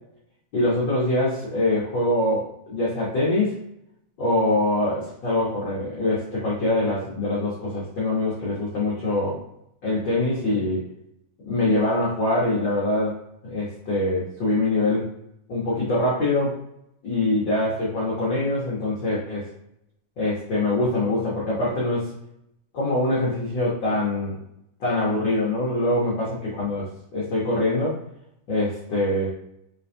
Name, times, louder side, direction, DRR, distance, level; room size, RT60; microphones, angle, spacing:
voice 1, 0.5-3.6 4.2-9.4 9.8-10.9 11.4-13.2 13.4-15.1 15.5-16.6 17.0-19.5 20.2-22.1 22.7-24.4 24.8-26.3 26.6-26.8 27.1-28.0 28.5-29.3, left 2 dB, 60° left, -7 dB, 1.3 m, -24 dB
5.5 x 3.4 x 2.7 m, 0.79 s
omnidirectional pair, 3.7 m